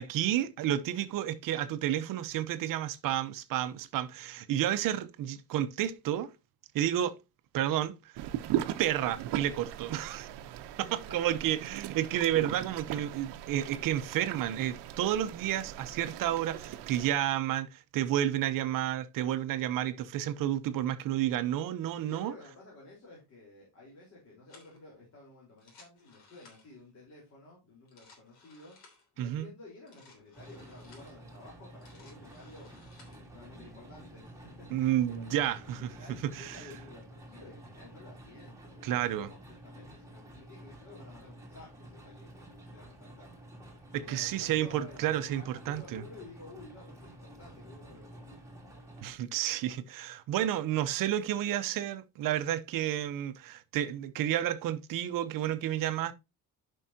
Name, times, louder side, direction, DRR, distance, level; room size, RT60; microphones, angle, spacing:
voice 1, 0.0-6.3 6.7-7.2 7.5-8.1 8.8-10.3 10.8-22.3 29.2-29.5 34.7-35.9 36.3-36.6 38.8-39.3 43.9-46.0 49.0-56.1, right 12 dB, 55° right, 0.8 m, -31 dB
sound 1, 8.2-17.1, right 12 dB, 80° right, 0.9 m, -38 dB
voice 2, 10.9-11.2 22.0-48.4, left 2 dB, 40° left, 3.8 m, -53 dB
sound 2, 24.5-24.8 25.5-26.8 27.7-29.1 29.8-31.2 31.6-33.2, left 4 dB, 65° left, 3.2 m, -59 dB
sound 3, 30.3-49.1, right 1 dB, 5° right, 1.7 m, -51 dB
11.0 x 5.6 x 2.8 m
cardioid pair, 180°, 41 cm